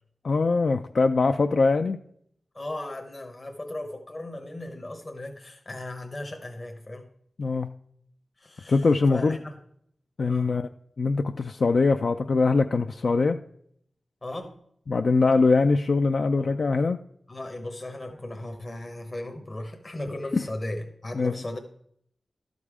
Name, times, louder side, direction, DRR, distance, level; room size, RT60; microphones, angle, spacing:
voice 1, 0.2-2.0 7.4-7.7 8.7-9.4 10.2-10.7 11.0-13.4 14.9-17.0 20.3-20.4 21.2-21.3, left 3 dB, 60° left, 7 dB, 0.3 m, -22 dB
voice 2, 2.5-7.1 8.4-9.6 10.3-10.5 14.2-14.5 16.4-16.5 17.3-21.6, left 1 dB, 35° left, 4 dB, 0.9 m, -37 dB
12.5 x 5.4 x 4.8 m, 0.70 s
wide cardioid pair, 105°, 0 cm